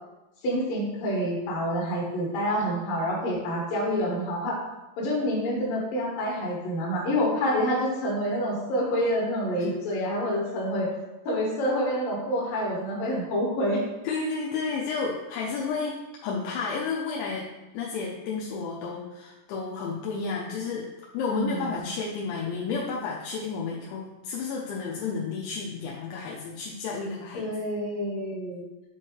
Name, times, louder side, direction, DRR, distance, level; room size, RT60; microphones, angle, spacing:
voice 1, 0.4-4.6 5.0-10.9 11.3-13.8 21.3-21.9 27.3-28.6, equal, 60° left, -4 dB, 2.5 m, -27 dB
voice 2, 14.0-17.5 17.7-20.9 21.1-27.5, left 4 dB, 85° left, -3 dB, 2.5 m, -31 dB
7.7 x 3.1 x 4.5 m, 1.1 s
omnidirectional pair, 5.8 m